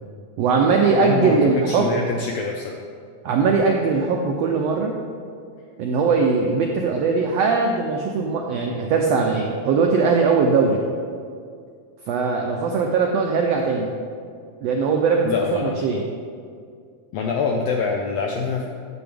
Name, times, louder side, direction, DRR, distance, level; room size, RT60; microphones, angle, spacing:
voice 1, 0.4-2.0 3.2-4.9 5.8-10.8 12.1-13.9 14.6-16.0, right 4 dB, 85° right, 1 dB, 1.4 m, -20 dB
voice 2, 1.0-1.4 1.7-2.7 15.2-15.8 17.1-18.7, left 4 dB, 85° left, 1 dB, 1.4 m, -25 dB
9.1 x 7.7 x 3.4 m, 2.2 s
omnidirectional pair, 3.5 m